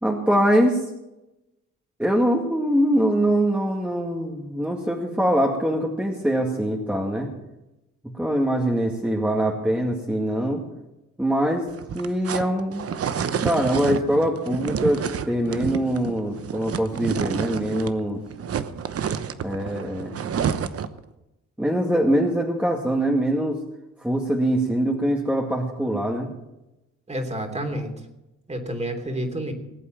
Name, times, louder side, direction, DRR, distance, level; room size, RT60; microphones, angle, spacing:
voice 1, 0.0-0.8 2.0-7.3 8.2-10.6 11.2-11.7 11.9-12.9 13.4-18.2 19.4-20.2 21.6-23.6 24.0-26.3, right 1 dB, 5° right, 0 dB, 2.1 m, -23 dB
sound 1, 11.7-18.0 18.3-21.0, right 7 dB, 50° right, 1.0 m, -29 dB
voice 2, 27.1-27.9 28.5-29.5, right 1 dB, 20° right, 5 dB, 3.1 m, -29 dB
19.5 x 8.2 x 7.7 m, 0.96 s
cardioid pair, 90°, 30 cm